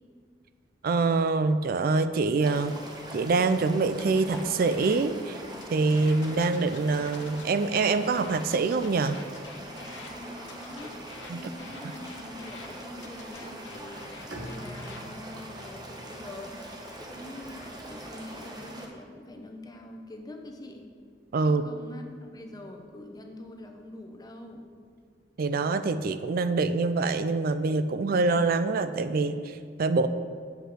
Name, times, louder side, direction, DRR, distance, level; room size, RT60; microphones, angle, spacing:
voice 1, 0.8-2.8 3.1-5.4 5.7-9.2 11.3-11.4 21.3-21.6 25.4-30.1, right 3 dB, 55° right, 11 dB, 0.4 m, -25 dB
Soft flowing water very close to the river, 2.4-18.9, right 1 dB, 25° right, 1.1 m, -43 dB
sound 1, 4.0-5.0 5.5-10.1 10.5-12.7 13.0-15.0 15.5-15.9, left 4 dB, 80° left, 1.2 m, -47 dB
voice 2, 10.1-11.0 11.3-20.9 21.4-24.7, left 1 dB, 20° left, 3 dB, 0.9 m, -44 dB
Bowed string instrument, 14.3-18.2, equal, 80° right, 1.4 m, -46 dB
8.2 x 5.4 x 7.4 m, 2.1 s
head